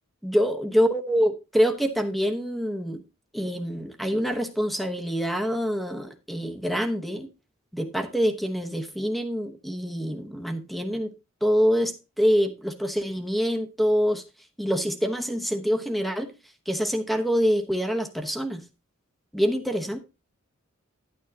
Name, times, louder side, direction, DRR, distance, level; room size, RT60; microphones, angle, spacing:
voice 1, 0.2-3.0 3.3-7.3 7.7-11.1 11.4-14.2 14.6-16.3 16.7-18.6 19.3-20.0, equal, ahead, 7 dB, 1.0 m, -25 dB
11.0 x 9.0 x 2.8 m, 0.27 s
head